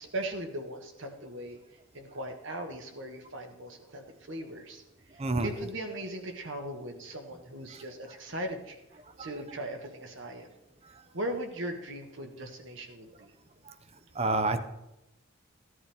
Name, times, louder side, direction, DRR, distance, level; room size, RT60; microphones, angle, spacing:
voice 1, 0.0-1.6 1.9-4.8 5.1-8.8 9.2-10.5 11.1-13.3, right 1 dB, 60° right, 4 dB, 1.5 m, -39 dB
voice 2, 5.2-5.5 9.2-9.3 14.2-14.6, right 2 dB, 30° right, 10 dB, 0.7 m, -27 dB
15.0 x 11.0 x 3.5 m, 0.93 s
head